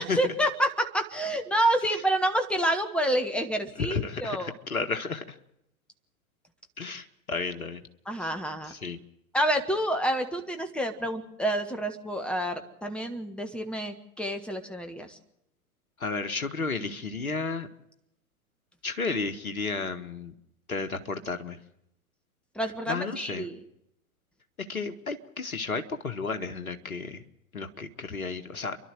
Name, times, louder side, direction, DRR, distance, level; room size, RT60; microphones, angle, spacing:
voice 1, 0.0-4.5 8.0-8.7 9.3-15.2 22.5-23.6, right 1 dB, ahead, 7 dB, 1.5 m, -28 dB
voice 2, 3.9-5.2 6.8-7.8 8.7-9.0 16.0-17.7 18.8-20.3 20.7-21.6 22.9-23.5 24.7-27.2 27.5-28.8, left 4 dB, 75° left, 8 dB, 1.8 m, -32 dB
29.5 x 12.0 x 7.9 m, 0.80 s
figure-of-eight pair, 100°, 43 cm